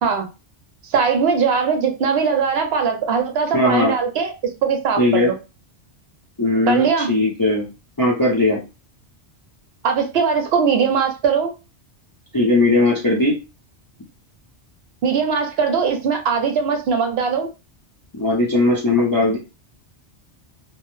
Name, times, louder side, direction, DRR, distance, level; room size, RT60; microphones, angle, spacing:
voice 1, 0.9-4.3 4.6-5.3 6.7-7.1 9.8-11.5 15.0-17.5, right 6 dB, 70° right, 4 dB, 0.8 m, -20 dB
voice 2, 3.5-3.9 5.0-5.3 6.4-7.7 8.0-8.6 12.3-13.4 18.2-19.4, left 2 dB, 30° left, -3 dB, 0.4 m, -18 dB
2.2 x 2.0 x 3.0 m, 0.29 s
omnidirectional pair, 1.2 m